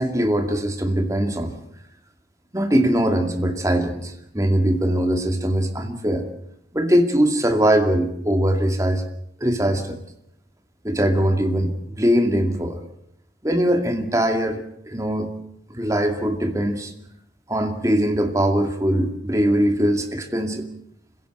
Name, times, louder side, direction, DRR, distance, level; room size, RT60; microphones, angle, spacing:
voice 1, 0.0-1.5 2.5-6.3 6.7-9.0 9.4-10.0 10.8-12.8 13.4-15.3 15.7-16.9 17.5-20.7, right 1 dB, 20° right, 5 dB, 2.3 m, -21 dB
26.0 x 16.5 x 8.0 m, 0.74 s
head